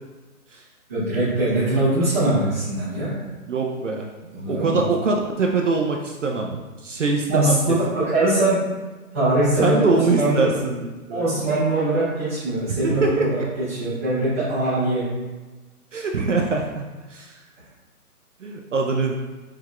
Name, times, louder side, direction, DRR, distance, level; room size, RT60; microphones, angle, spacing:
voice 1, 0.9-3.1 4.3-4.8 7.3-8.6 9.1-10.5 11.1-15.0, right 2 dB, 10° right, -14 dB, 0.6 m, -22 dB
voice 2, 3.5-4.1 4.5-6.5 6.8-7.6 9.6-11.4 12.7-13.3 15.9-17.4 18.4-19.1, right 3 dB, 55° right, 1 dB, 0.5 m, -23 dB
4.7 x 3.4 x 2.3 m, 1.2 s
hypercardioid pair, 160°, 46 cm